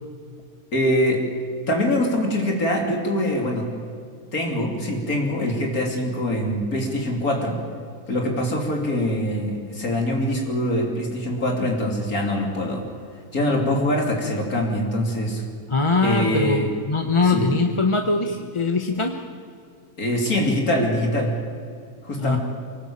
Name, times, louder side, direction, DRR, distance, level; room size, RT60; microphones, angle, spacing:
voice 1, 0.7-1.2 1.7-3.7 4.3-7.6 8.1-12.9 13.3-15.4 16.0-16.7 17.3-17.5 20.0-21.3 22.0-22.4, left 1 dB, 75° left, 1 dB, 3.5 m, -23 dB
voice 2, 15.7-19.2 22.2-22.4, left 3 dB, 25° left, 5 dB, 1.0 m, -22 dB
24.0 x 19.0 x 8.7 m, 2.3 s
omnidirectional pair, 1.6 m